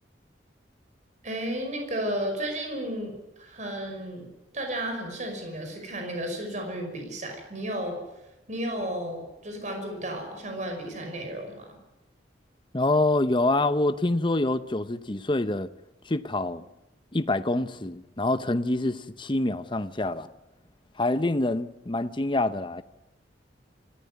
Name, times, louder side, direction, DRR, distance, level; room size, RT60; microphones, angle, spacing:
voice 1, 1.2-4.3 4.5-8.0 8.5-11.7, right 1 dB, 45° right, 5.7 m, -33 dB
voice 2, 12.7-15.7 16.1-16.6 17.1-20.3 21.0-22.8, left 2 dB, 25° left, 0.8 m, -26 dB
26.0 x 14.5 x 9.5 m
head